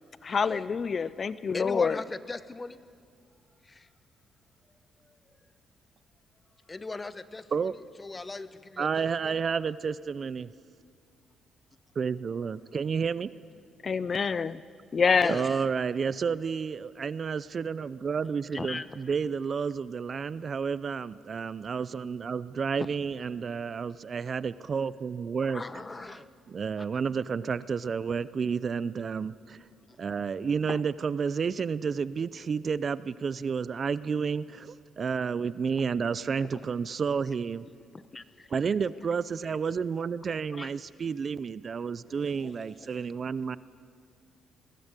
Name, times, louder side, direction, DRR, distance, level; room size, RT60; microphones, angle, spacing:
voice 1, 0.2-2.0 13.8-14.6 14.9-15.4, left 5 dB, 40° left, 17 dB, 0.4 m, -26 dB
voice 2, 1.5-2.9 3.6-3.9 5.0-5.2 6.7-9.4 15.2-15.6 18.5-18.9 22.8-22.9 25.4-26.3 29.9-30.0 37.9-38.5 40.2-40.7, left 3 dB, 25° left, 13 dB, 0.9 m, -39 dB
voice 3, 8.8-10.5 12.0-13.3 15.3-25.6 26.5-29.7 30.0-37.7 38.5-43.6, right 6 dB, 45° right, 17 dB, 0.5 m, -31 dB
21.0 x 16.5 x 8.2 m, 2.2 s
cardioid pair, 90°, 0 cm